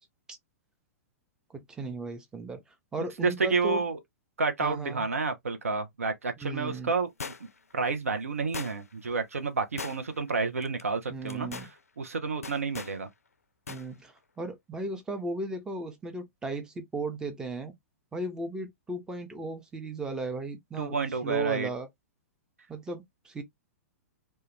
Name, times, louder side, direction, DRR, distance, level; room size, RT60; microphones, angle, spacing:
voice 1, 1.5-2.6 2.9-3.8 4.6-5.1 6.4-6.9 11.1-11.7 13.7-17.7 18.1-21.0 21.2-21.9 22.7-23.4, right 2 dB, 10° right, 0.5 m, -36 dB
voice 2, 3.2-4.0 4.4-7.1 7.7-11.7 12.0-13.1 20.8-21.7, right 4 dB, 75° right, 0.5 m, -30 dB
sound 1, 7.2-7.7 8.5-9.0 9.8-10.3 10.6-10.8 11.3-11.7 12.4-13.0 13.7-13.9 14.2-14.3, left 5 dB, 80° left, 0.3 m, -39 dB
2.2 x 2.1 x 2.9 m
figure-of-eight pair, 105°, 8 cm